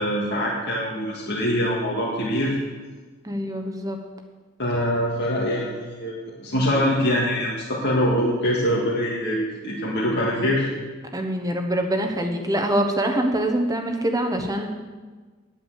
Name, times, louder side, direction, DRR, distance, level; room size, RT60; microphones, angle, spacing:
voice 1, 0.0-2.6 4.6-10.7, equal, 55° left, -5 dB, 2.0 m, -24 dB
voice 2, 3.2-4.0 11.1-14.7, right 1 dB, 15° right, 4 dB, 1.1 m, -24 dB
10.5 x 9.1 x 7.5 m, 1.4 s
head